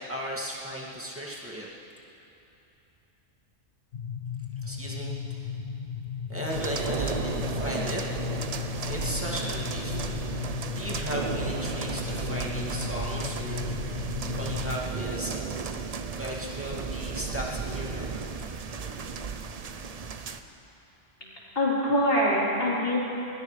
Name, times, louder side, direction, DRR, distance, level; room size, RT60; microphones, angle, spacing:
voice 1, 0.0-1.7 4.6-5.5 6.3-8.1 8.4-10.0 10.7-15.4 16.1-18.2, equal, 10° right, -5 dB, 2.1 m, -36 dB
sound 1, 3.9-14.8, left 7 dB, 70° left, 1.0 m, -35 dB
sound 2, 6.5-20.4, right 5 dB, 45° right, 0.6 m, -34 dB
voice 2, 21.2-23.0, left 1 dB, 50° left, -8 dB, 4.1 m, -25 dB
21.5 x 20.0 x 3.3 m, 3.0 s
omnidirectional pair, 1.3 m